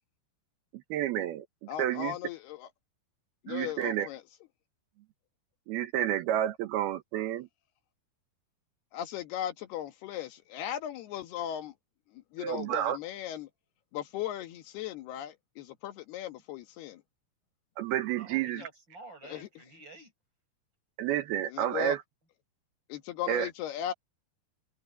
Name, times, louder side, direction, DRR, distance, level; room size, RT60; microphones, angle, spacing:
voice 1, 0.9-2.1 3.5-4.1 5.7-7.5 12.4-13.0 17.8-18.6 21.0-22.0 23.3-23.5, right 11 dB, 80° right, 3.0 m, -30 dB
voice 2, 1.7-2.7 3.4-4.2 8.9-11.7 12.1-13.5 13.9-17.0 18.6-18.7 19.2-19.5 21.5-22.0 22.9-23.9, left 11 dB, 90° left, 3.6 m, -37 dB
voice 3, 18.1-20.1, right 3 dB, 25° right, 7.9 m, -50 dB
omnidirectional pair, 4.4 m